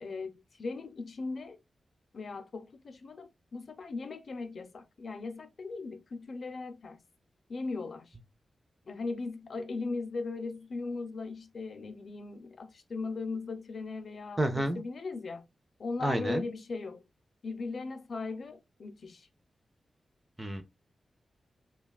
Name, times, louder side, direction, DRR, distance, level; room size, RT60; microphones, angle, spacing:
voice 1, 0.0-1.6 2.1-7.0 7.5-8.1 8.9-15.4 15.8-17.1 17.4-19.3, left 3 dB, 50° left, 0.6 m, -38 dB
voice 2, 14.4-14.8 16.0-16.5 20.4-20.6, right 1 dB, 15° right, 0.5 m, -29 dB
5.4 x 2.3 x 2.3 m
wide cardioid pair, 160°, 0 cm